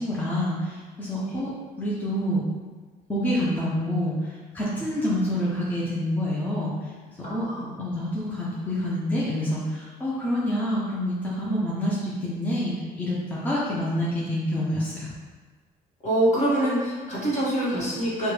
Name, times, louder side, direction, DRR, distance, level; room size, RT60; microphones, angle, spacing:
voice 1, 0.0-2.4 3.1-6.7 7.3-7.5 7.8-15.1, equal, 10° left, -7 dB, 0.7 m, -27 dB
voice 2, 7.2-7.7 16.0-18.3, right 1 dB, 45° left, -6 dB, 1.5 m, -25 dB
4.6 x 2.3 x 3.1 m, 1.4 s
cardioid pair, 110°, 17 cm